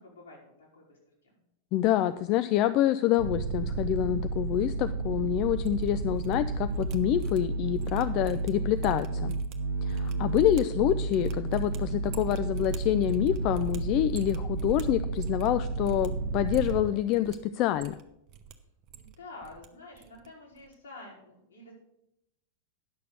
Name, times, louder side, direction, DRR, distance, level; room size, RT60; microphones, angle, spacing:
voice 1, 0.0-1.4 18.9-21.7, left 2 dB, 70° left, -3 dB, 3.9 m, -49 dB
voice 2, 1.7-9.3 9.8-18.0, left 12 dB, 40° left, 12 dB, 0.4 m, -27 dB
sound 1, 3.2-16.9, right 3 dB, 60° right, 0.6 m, -32 dB
sound 2, 5.5-6.3 6.6-15.5 15.8-16.1 16.4-17.4 17.7-18.5 18.8-19.7 19.9-20.3 20.5-20.7, right 8 dB, 35° right, 0.9 m, -47 dB
10.0 x 6.7 x 6.4 m, 0.80 s
figure-of-eight pair, 90°, 0 cm